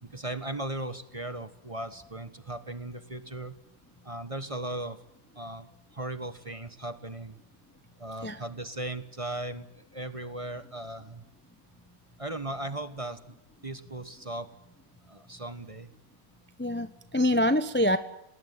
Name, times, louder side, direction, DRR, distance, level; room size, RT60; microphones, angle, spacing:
voice 1, 0.0-3.6 4.0-5.0 5.3-7.4 8.0-11.2 12.2-13.4 13.6-14.5 15.1-15.9, right 2 dB, 20° right, 12 dB, 1.3 m, -37 dB
voice 2, 16.6-18.0, left 1 dB, 10° left, 11 dB, 0.7 m, -25 dB
20.5 x 19.5 x 9.6 m, 0.81 s
omnidirectional pair, 2.1 m